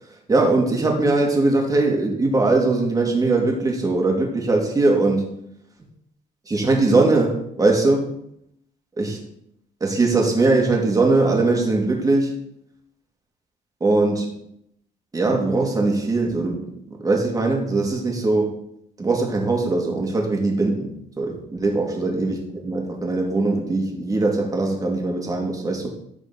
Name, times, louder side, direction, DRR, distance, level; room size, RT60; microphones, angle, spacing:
voice 1, 0.3-5.2 6.5-8.1 9.0-9.2 9.8-12.4 13.8-14.3 15.1-18.5 19.0-25.9, right 3 dB, 20° right, 0 dB, 2.5 m, -21 dB
13.5 x 4.9 x 4.2 m, 0.74 s
cardioid pair, 110°, 17 cm